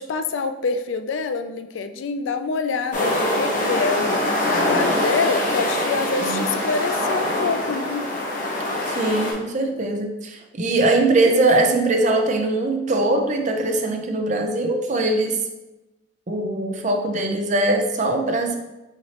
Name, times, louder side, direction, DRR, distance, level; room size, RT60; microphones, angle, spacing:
voice 1, 0.0-8.1, left 4 dB, 90° left, 9 dB, 0.4 m, -26 dB
sound 1, 2.9-9.3, left 1 dB, 45° left, 1.0 m, -23 dB
voice 2, 8.9-15.4 16.3-18.6, right 2 dB, 40° right, 4 dB, 0.5 m, -21 dB
5.7 x 3.0 x 2.9 m, 1.0 s
head